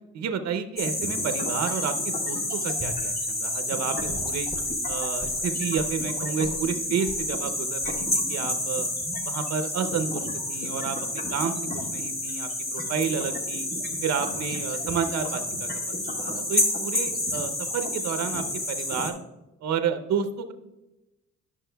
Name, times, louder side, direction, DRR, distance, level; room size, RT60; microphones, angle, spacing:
voice 1, 0.1-4.5 4.9-8.9 9.2-13.7 14.0-15.7 16.1-19.2 19.6-20.5, right 7 dB, 60° right, 9 dB, 0.7 m, -30 dB
sound 1, 0.8-19.1, left 1 dB, 30° left, 1.6 m, -29 dB
Gurgling / Sink (filling or washing) / Liquid, 2.8-3.1 4.0-6.7 7.1-7.3 7.8-8.1 9.0-9.2, equal, 5° right, 1.1 m, -41 dB
11.0 x 6.1 x 2.2 m, 0.98 s
cardioid pair, 90°, 30 cm